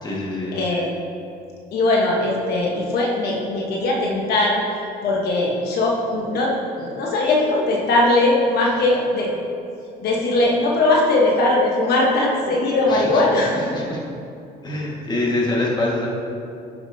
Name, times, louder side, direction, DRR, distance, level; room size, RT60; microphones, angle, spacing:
voice 1, 0.0-0.6 12.9-13.2 13.7-14.0 14.6-16.1, left 2 dB, 25° left, -4 dB, 1.7 m, -24 dB
voice 2, 0.5-0.9 1.7-4.6 5.0-9.4 10.0-13.7, left 2 dB, 70° left, -2 dB, 1.2 m, -20 dB
11.5 x 6.0 x 2.7 m, 2.6 s
cardioid pair, 110°, 17 cm